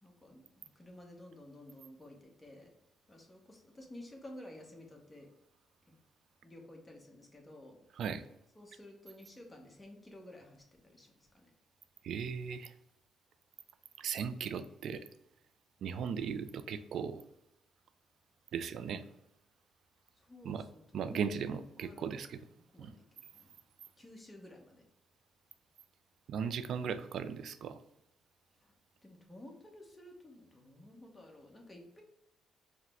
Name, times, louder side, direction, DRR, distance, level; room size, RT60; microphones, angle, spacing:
voice 1, 0.0-2.7 3.1-5.3 5.9-6.0 6.4-8.0 8.5-11.5 18.9-19.0 20.1-22.2 22.7-23.5 24.0-24.8 28.5-28.7 29.0-32.0, left 1 dB, 15° left, 1 dB, 1.0 m, -53 dB
voice 2, 12.0-12.7 14.0-15.0 15.8-17.2 18.5-19.0 20.4-20.6 20.9-22.4 22.8-22.9 26.3-27.8, right 7 dB, 70° right, 11 dB, 0.3 m, -37 dB
4.8 x 2.1 x 3.5 m, 0.83 s
cardioid pair, 90°, 0 cm